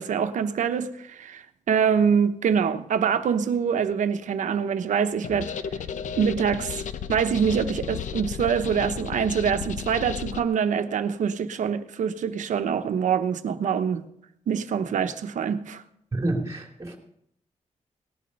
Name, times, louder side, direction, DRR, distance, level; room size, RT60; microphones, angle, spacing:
voice 1, 0.0-5.5 6.2-6.8 7.1-14.1 14.5-15.8, right 7 dB, 80° right, 1.0 m, -25 dB
sound 1, 5.2-10.4, left 7 dB, 80° left, 0.7 m, -34 dB
voice 2, 16.1-17.0, right 2 dB, 25° right, 3.0 m, -28 dB
18.5 x 11.0 x 5.4 m
wide cardioid pair, 135°, 13 cm